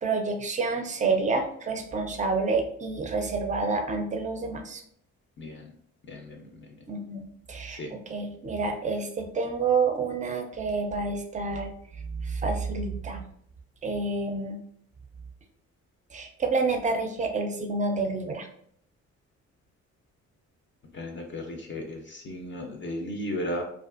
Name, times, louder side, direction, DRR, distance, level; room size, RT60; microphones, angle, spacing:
voice 1, 0.0-4.8 6.9-11.7 12.2-13.2 13.8-14.6 16.1-18.5, right 4 dB, 25° right, 5 dB, 0.4 m, -28 dB
voice 2, 5.4-5.7 6.1-6.4 7.7-7.9 20.9-23.6, left 1 dB, 40° left, 2 dB, 0.5 m, -35 dB
2.4 x 2.4 x 2.4 m, 0.66 s
cardioid pair, 90°, 30 cm